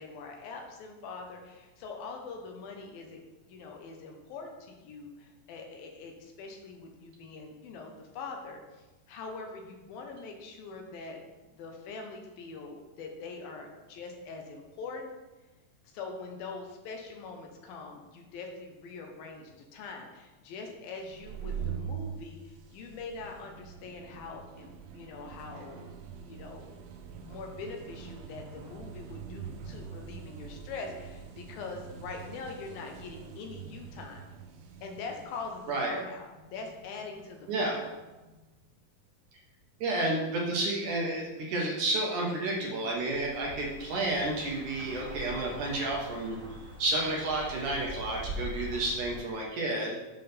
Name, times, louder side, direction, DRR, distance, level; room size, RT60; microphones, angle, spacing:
voice 1, 0.0-3.2 3.5-15.1 15.9-25.9 26.2-26.7 27.3-34.3 34.8-37.9, left 4 dB, 75° left, 2 dB, 2.6 m, -43 dB
sound 1, 21.0-38.4, right 7 dB, 85° right, 2.6 m, -44 dB
voice 2, 39.8-46.4 46.8-50.0, right 2 dB, 65° right, -2 dB, 2.3 m, -31 dB
sound 2, 42.9-49.2, equal, 30° right, 1.8 m, -43 dB
7.8 x 3.8 x 6.7 m, 1.1 s
omnidirectional pair, 4.4 m